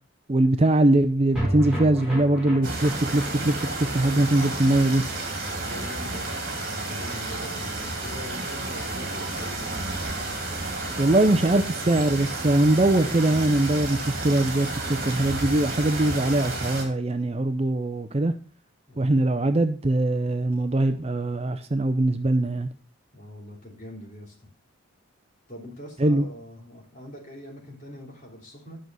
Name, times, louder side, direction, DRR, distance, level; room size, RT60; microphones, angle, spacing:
voice 1, 0.3-5.0 11.0-18.3 19.0-22.7 26.0-26.3, right 1 dB, 30° right, 9 dB, 0.5 m, -22 dB
sound 1, 1.3-7.8 8.0-8.1 8.4-8.5, equal, 5° right, 4.9 m, -35 dB
sound 2, 2.6-16.8, right 2 dB, 45° right, 2.8 m, -31 dB
voice 2, 5.4-10.0 18.9-19.2 23.1-24.5 25.5-28.8, left 1 dB, 35° left, -1 dB, 3.1 m, -43 dB
10.5 x 6.3 x 5.3 m, 0.40 s
head